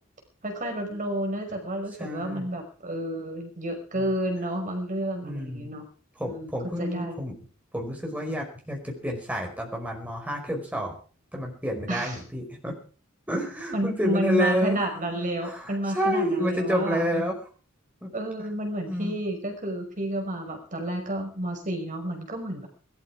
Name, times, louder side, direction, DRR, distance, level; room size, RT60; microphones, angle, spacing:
voice 1, 0.4-5.8 6.2-6.5 6.8-7.2 11.9-12.2 13.7-17.2 18.1-22.7, right 1 dB, 40° right, 4 dB, 5.5 m, -30 dB
voice 2, 2.0-2.5 3.9-4.1 5.2-5.7 6.1-7.3 7.7-11.0 11.3-12.8 13.3-14.8 15.4-17.4 18.0-18.1 18.4-18.5 18.9-19.1, equal, 5° right, 1 dB, 5.1 m, -29 dB
21.0 x 13.0 x 4.8 m, 0.40 s
head